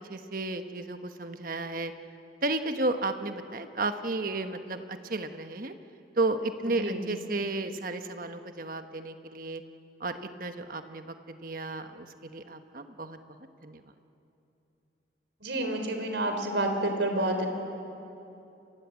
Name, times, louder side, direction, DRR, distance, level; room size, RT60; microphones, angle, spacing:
voice 1, 0.1-1.9 2.4-5.7 6.1-9.6 10.0-13.2 13.6-13.8, right 2 dB, 50° right, 8 dB, 1.2 m, -33 dB
voice 2, 15.4-17.5, right 1 dB, 75° right, 5 dB, 3.7 m, -29 dB
28.5 x 22.5 x 8.4 m, 2.9 s
head